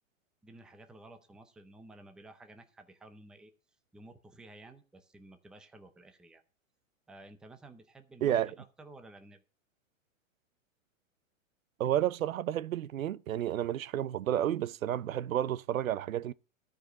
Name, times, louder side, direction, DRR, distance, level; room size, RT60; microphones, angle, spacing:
voice 1, 0.4-3.5 3.9-6.4 7.1-9.4, right 2 dB, ahead, 0.5 m, -53 dB
voice 2, 11.8-16.3, right 11 dB, 90° right, 0.7 m, -31 dB
13.0 x 5.0 x 7.6 m
hypercardioid pair, 145°, 40 cm